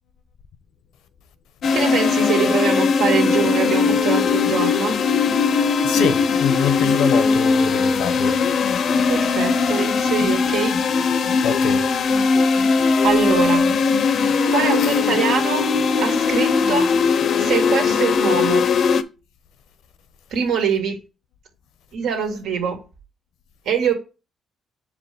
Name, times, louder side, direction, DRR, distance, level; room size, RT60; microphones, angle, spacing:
sound 1, 1.6-19.0, left 5 dB, 60° left, 0.6 m, -19 dB
voice 1, 1.7-5.0 9.1-10.8 13.0-13.7 14.5-15.7 16.0-16.9 17.4-18.7 20.3-21.0 21.9-22.8 23.7-23.9, right 6 dB, 85° right, 2.0 m, -23 dB
voice 2, 5.8-8.4 11.4-11.8 14.8-14.9, left 8 dB, 85° left, 0.9 m, -25 dB
7.2 x 5.1 x 3.4 m
cardioid pair, 90°, 0 cm